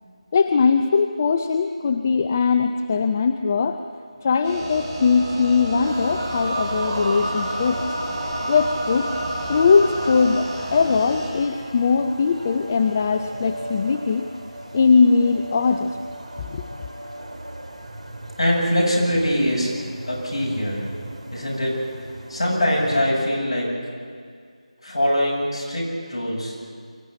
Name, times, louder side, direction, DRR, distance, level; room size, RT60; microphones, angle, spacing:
voice 1, 0.3-3.8 4.2-7.8 8.5-9.1 9.5-14.3 14.7-16.0 16.4-16.7, left 5 dB, 25° left, 8 dB, 0.6 m, -20 dB
sound 1, 4.4-11.3, right 1 dB, 20° right, 6.5 m, -32 dB
sound 2, 5.8-23.0, right 1 dB, 80° right, 4.6 m, -34 dB
voice 2, 18.4-19.8 20.1-20.9 21.3-21.8 22.3-23.8 24.8-26.5, equal, 45° left, -3 dB, 7.8 m, -22 dB
24.0 x 15.0 x 9.6 m, 2.1 s
figure-of-eight pair, 165°, 4 cm